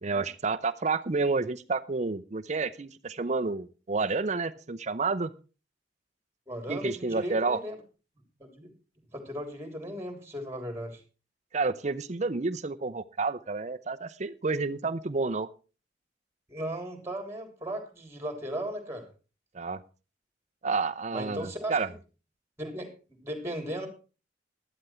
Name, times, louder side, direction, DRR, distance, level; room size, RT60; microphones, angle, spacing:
voice 1, 0.0-5.3 6.7-7.6 11.5-15.5 19.5-19.8 20.6-21.9, right 4 dB, 40° right, 10 dB, 0.7 m, -30 dB
voice 2, 6.5-7.7 8.4-8.7 9.1-11.0 16.5-19.0 21.1-21.9 22.6-23.9, equal, 15° right, 5 dB, 3.4 m, -36 dB
12.0 x 12.0 x 4.4 m, 0.34 s
head